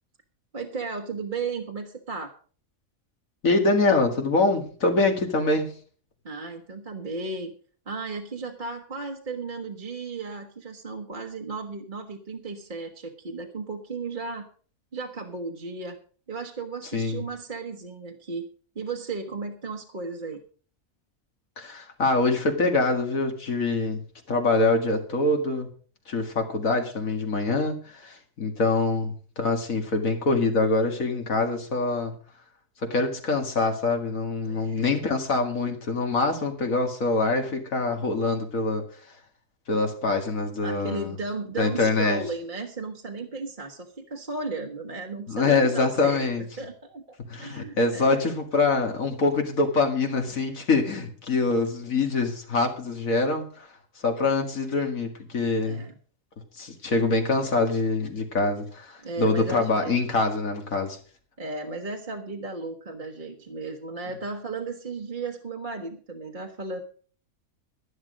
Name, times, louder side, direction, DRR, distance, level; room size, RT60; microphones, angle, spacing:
voice 1, 0.5-2.3 6.2-7.5 7.9-14.5 14.9-16.0 16.3-18.5 18.7-20.4 34.4-34.9 40.6-46.3 46.6-48.2 55.6-55.9 59.0-60.0 61.4-66.8, right 3 dB, 35° right, 2 dB, 1.4 m, -35 dB
voice 2, 3.4-5.7 16.9-17.2 21.6-25.7 26.1-32.1 32.8-38.8 39.7-41.2 41.6-42.2 45.3-46.4 47.3-53.7 54.0-55.8 56.5-61.0, left 3 dB, 75° left, 4 dB, 2.5 m, -24 dB
11.5 x 11.0 x 5.1 m, 0.42 s
omnidirectional pair, 1.4 m